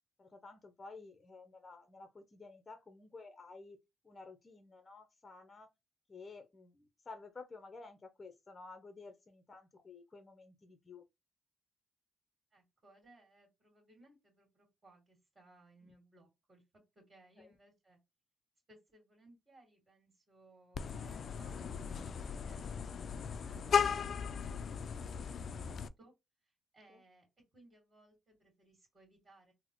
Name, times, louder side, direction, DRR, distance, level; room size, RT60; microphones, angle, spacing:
voice 1, 0.2-5.7 6.1-11.0 15.8-15.9 17.4-17.5 26.9-27.0, left 3 dB, 25° left, 0.7 m, -53 dB
voice 2, 12.5-16.6 17.0-18.0 18.7-22.8 23.3-26.1 26.4-27.3 27.5-29.5, right 2 dB, 25° right, 2.1 m, -64 dB
Vehicle horn car horn honking, 20.7-25.9, left 6 dB, 55° left, 0.3 m, -36 dB
3.8 x 2.1 x 3.0 m
cardioid pair, 90°, 0 cm